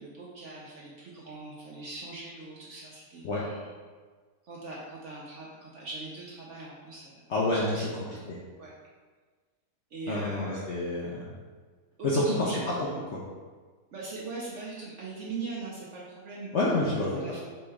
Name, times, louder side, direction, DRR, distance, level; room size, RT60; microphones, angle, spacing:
voice 1, 0.0-3.7 4.4-7.2 7.5-8.2 8.6-8.7 9.9-10.6 12.0-12.5 13.9-16.5 17.1-17.4, right 3 dB, 65° right, -4 dB, 0.8 m, -41 dB
voice 2, 7.3-7.9 8.3-8.4 10.1-11.3 12.0-12.7 13.1-13.2 16.5-17.2, left 2 dB, 65° left, -5 dB, 0.7 m, -28 dB
4.3 x 3.2 x 3.4 m, 1.4 s
omnidirectional pair, 1.8 m